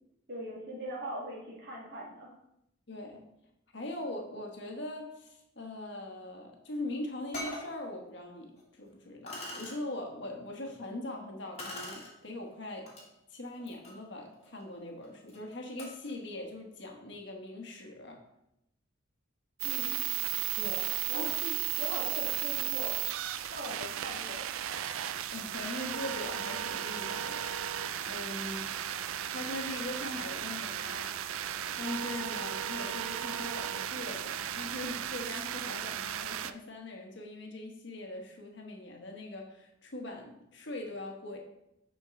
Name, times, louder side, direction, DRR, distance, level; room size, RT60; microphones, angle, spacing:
voice 1, 0.3-2.3 19.6-20.1 21.1-21.2 21.8-23.0 23.5-24.5, equal, 50° right, -4 dB, 1.7 m, -41 dB
voice 2, 2.9-3.2 3.7-12.9 13.3-18.2 20.6-21.5 25.3-27.5 28.0-28.7 29.3-31.1 31.8-41.4, left 1 dB, 55° left, 2 dB, 1.2 m, -41 dB
sound 1, 6.7-6.8 7.3-7.7 8.6-8.7 9.3-9.8 11.6-12.1 12.9-13.0 13.5-16.1, left 1 dB, 30° left, 1.8 m, -43 dB
sound 2, 19.6-36.5, right 11 dB, 80° right, 0.4 m, -35 dB
8.9 x 4.5 x 3.7 m, 0.83 s
head